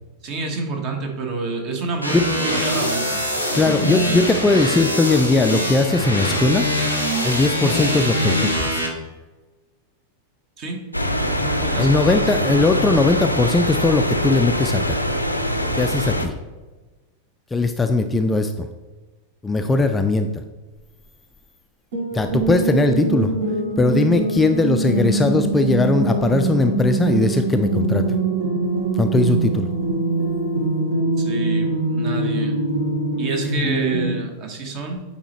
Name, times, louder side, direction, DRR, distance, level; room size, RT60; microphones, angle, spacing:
voice 1, 0.2-3.2 3.5-4.6 10.6-10.8 11.4-12.3 31.2-32.6 33.2-35.0, right 3 dB, 40° right, 3 dB, 1.2 m, -29 dB
sound 1, 2.0-8.9, equal, 85° right, 1.0 m, -23 dB
voice 2, 3.5-6.7 7.2-8.8 11.8-15.0 15.7-16.3 17.5-18.7 19.4-20.4 22.1-23.3 23.8-28.2 29.0-29.7, left 3 dB, 10° left, 7 dB, 0.3 m, -19 dB
sound 2, 10.9-16.3, equal, 90° left, 0.5 m, -23 dB
sound 3, 21.9-34.1, right 3 dB, 60° right, 1.3 m, -23 dB
8.8 x 4.2 x 3.0 m, 1.2 s
figure-of-eight pair, 90°, 0 cm